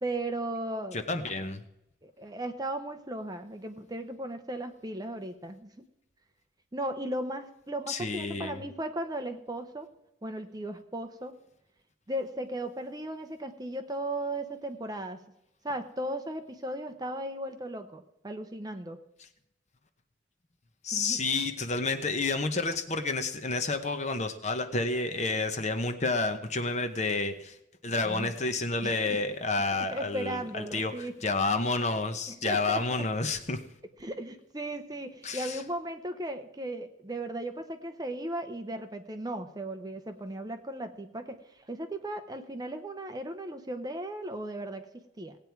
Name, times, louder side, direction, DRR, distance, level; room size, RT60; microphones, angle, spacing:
voice 1, 0.0-1.0 2.0-5.9 6.7-9.9 10.2-11.4 12.1-15.2 15.6-19.0 20.9-21.2 28.0-28.3 28.8-29.2 29.7-31.1 32.4-33.0 34.0-45.4, right 1 dB, 20° right, 7 dB, 0.8 m, -36 dB
voice 2, 0.9-1.6 7.9-8.6 20.8-27.6 27.8-33.6 35.2-35.6, left 3 dB, 35° left, 8 dB, 0.9 m, -30 dB
17.5 x 8.7 x 4.6 m, 0.83 s
head